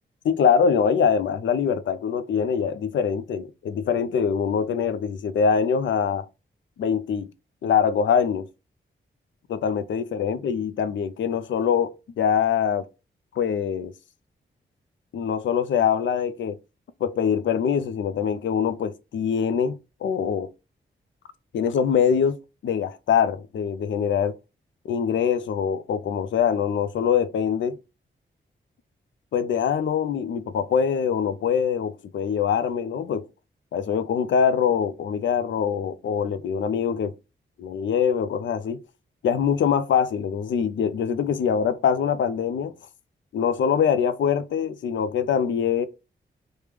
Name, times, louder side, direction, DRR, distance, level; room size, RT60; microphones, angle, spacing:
voice 1, 0.2-6.3 6.8-7.3 7.6-8.5 9.5-12.9 13.3-13.9 15.1-16.6 17.0-20.5 21.5-22.4 22.6-24.3 24.8-27.8 29.3-33.3 33.7-37.1 37.6-38.8 39.2-42.7 43.3-45.9, left 7 dB, 65° left, 0.4 m, -23 dB
3.3 x 2.1 x 3.3 m
cardioid pair, 50°, 21 cm